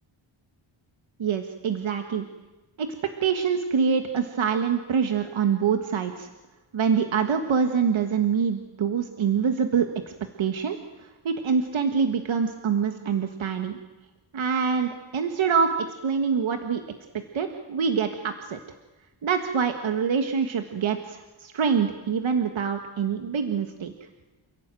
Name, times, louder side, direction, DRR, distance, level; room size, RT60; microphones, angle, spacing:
voice 1, 1.2-2.3 2.8-2.9 3.2-6.3 6.7-9.9 10.4-13.8 14.3-16.8 17.3-18.6 19.2-23.9, right 6 dB, 70° right, 5 dB, 1.7 m, -25 dB
29.5 x 17.0 x 9.1 m, 1.2 s
wide cardioid pair, 160°, 48 cm